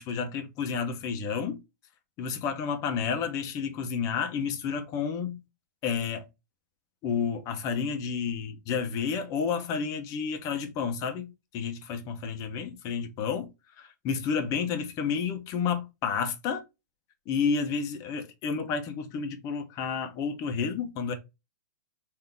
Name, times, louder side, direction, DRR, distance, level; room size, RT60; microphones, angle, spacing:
voice 1, 0.0-1.6 2.2-5.4 5.8-6.3 7.0-11.3 11.5-13.5 13.8-16.6 17.3-21.1, left 6 dB, 35° left, 0.8 m, -30 dB
3.6 x 2.8 x 3.5 m
hypercardioid pair, 125°, 10 cm